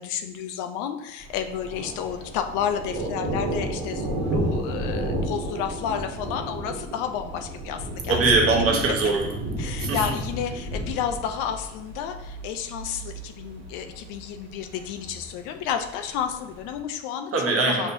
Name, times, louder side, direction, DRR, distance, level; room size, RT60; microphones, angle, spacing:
voice 1, 0.0-8.2 9.6-17.3 17.7-17.9, left 8 dB, 75° left, 6 dB, 0.5 m, -31 dB
Thunder, 1.2-16.8, right 1 dB, 75° right, 1.1 m, -32 dB
voice 2, 8.1-9.2 9.8-10.0 17.3-17.9, right 3 dB, 45° right, 0 dB, 1.1 m, -21 dB
5.4 x 2.9 x 2.6 m, 0.85 s
hypercardioid pair, 55°, 31 cm